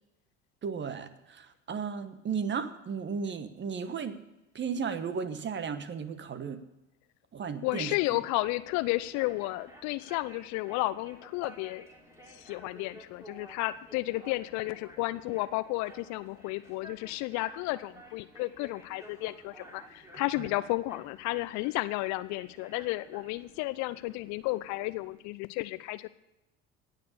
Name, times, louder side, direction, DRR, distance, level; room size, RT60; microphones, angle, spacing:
voice 1, 0.6-4.2 4.5-6.6 7.3-7.9 20.4-20.5, right 6 dB, 35° right, 12 dB, 1.3 m, -35 dB
voice 2, 7.6-11.9 12.3-26.1, left 19 dB, 55° left, 16 dB, 0.6 m, -32 dB
sound 1, 8.4-25.2, right 1 dB, 10° right, 3.3 m, -53 dB
18.5 x 6.7 x 6.7 m, 0.95 s
figure-of-eight pair, 60°, 34 cm